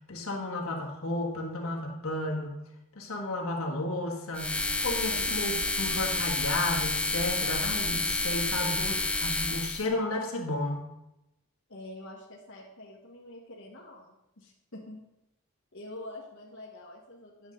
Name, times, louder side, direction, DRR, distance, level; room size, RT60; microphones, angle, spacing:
voice 1, 0.1-2.6 2.9-10.8, left 2 dB, 75° left, -1 dB, 1.5 m, -33 dB
sound 1, 4.3-9.9, left 2 dB, 5° left, 0.3 m, -29 dB
voice 2, 11.7-15.0 15.7-17.5, left 1 dB, 60° left, -4 dB, 1.3 m, -46 dB
9.7 x 7.1 x 3.8 m, 0.89 s
head